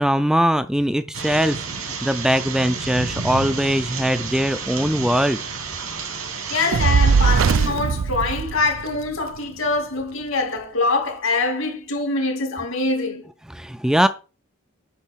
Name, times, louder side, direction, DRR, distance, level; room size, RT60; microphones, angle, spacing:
voice 1, 0.0-5.4 13.5-14.1, equal, 5° right, 0.4 m, -21 dB
sound 1, 1.1-7.7, right 4 dB, 90° right, 3.1 m, -31 dB
voice 2, 6.5-13.2, left 3 dB, 75° left, 2.9 m, -24 dB
Fire, 6.7-9.2, right 5 dB, 70° right, 0.5 m, -19 dB
9.9 x 3.9 x 7.4 m
head